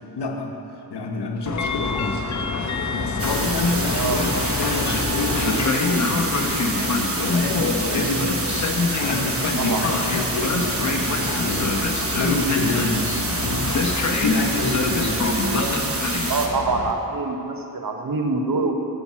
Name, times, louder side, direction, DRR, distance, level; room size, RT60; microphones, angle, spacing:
voice 1, 0.2-0.5 0.9-2.2 2.9-8.4 8.9-13.7 14.1-15.3, left 2 dB, 90° left, 2 dB, 0.9 m, -28 dB
Train, 1.5-16.9, left 3 dB, 45° left, 0.8 m, -25 dB
sound 1, 2.8-11.8, left 1 dB, 30° left, 1.9 m, -41 dB
sound 2, 3.2-16.5, right 2 dB, 35° right, 1.1 m, -28 dB
voice 2, 3.9-4.3 9.6-9.9 15.3-15.8 16.3-18.7, right 3 dB, 60° right, 3 dB, 1.0 m, -25 dB
7.1 x 6.5 x 6.1 m, 2.8 s
cardioid pair, 45°, 39 cm